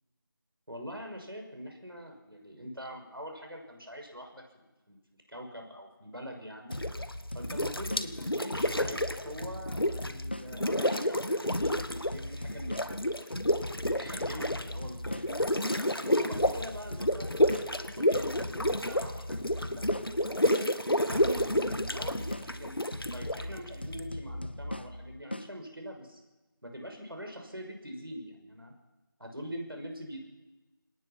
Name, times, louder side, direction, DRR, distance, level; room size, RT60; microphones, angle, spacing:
voice 1, 0.7-6.8 7.3-13.2 13.8-15.4 16.0-20.7 21.1-22.8 23.1-26.2 26.6-28.7 29.2-30.2, equal, 90° right, 3 dB, 5.9 m, -44 dB
sound 1, 6.7-7.1 7.4-10.2 10.5-12.2 12.5-24.0, left 1 dB, 85° left, 1.7 m, -30 dB
sound 2, 6.7-11.1 11.5-15.9 16.3-20.7 21.1-25.5, left 1 dB, 30° left, 0.6 m, -40 dB
28.5 x 19.0 x 5.9 m, 1.1 s
figure-of-eight pair, 170°, 12 cm